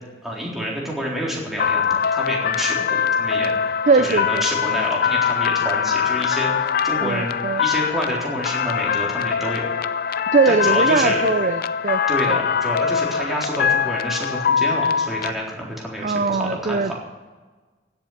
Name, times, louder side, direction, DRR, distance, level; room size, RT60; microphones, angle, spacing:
voice 1, 0.2-9.7 10.5-11.2 12.1-17.0, equal, ahead, -4 dB, 3.9 m, -28 dB
sound 1, 1.6-15.3, left 7 dB, 55° left, 0.5 m, -22 dB
voice 2, 3.9-4.4 7.0-7.6 10.3-12.0 12.3-12.4 16.0-17.0, right 4 dB, 50° right, 11 dB, 0.5 m, -20 dB
16.5 x 7.9 x 8.7 m, 1.3 s
head